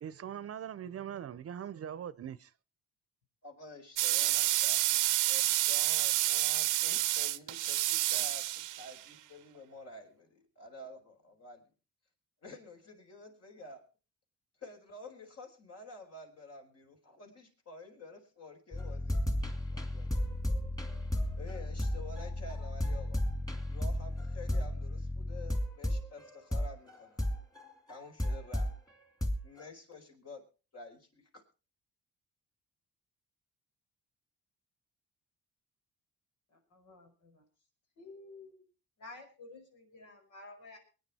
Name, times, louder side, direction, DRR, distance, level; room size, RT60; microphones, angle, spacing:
voice 1, 0.0-2.5, right 9 dB, 50° right, 0.7 m, -41 dB
voice 2, 3.4-11.7 12.4-13.8 14.6-20.2 21.3-23.2 23.6-27.2 27.9-28.7 29.4-30.4 30.7-31.4, left 2 dB, 55° left, 4.8 m, -50 dB
sound 1, 4.0-9.0, right 16 dB, 85° right, 0.7 m, -29 dB
sound 2, 18.7-28.8 29.2-29.7, left 1 dB, 10° left, 2.4 m, -34 dB
voice 3, 36.5-37.4 38.0-38.6 39.0-40.8, left 3 dB, 85° left, 5.6 m, -52 dB
23.5 x 9.8 x 4.3 m
cardioid pair, 90°, 30 cm